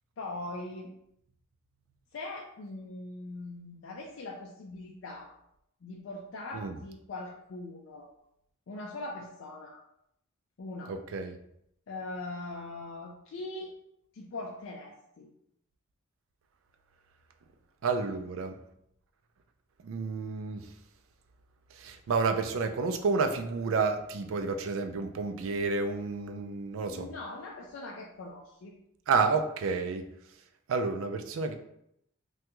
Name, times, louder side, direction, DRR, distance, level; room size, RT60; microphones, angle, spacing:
voice 1, 0.2-0.9 2.1-5.3 5.8-8.1 8.7-9.8 10.6-10.9 11.9-13.7 14.1-15.3 18.1-18.2 26.8-28.7, left 2 dB, 65° left, -1 dB, 0.4 m, -41 dB
voice 2, 10.9-11.3 17.8-18.5 19.8-20.7 21.7-27.1 29.1-30.0 30.7-31.5, right 4 dB, 70° right, 7 dB, 0.4 m, -30 dB
3.3 x 2.2 x 2.9 m, 0.76 s
head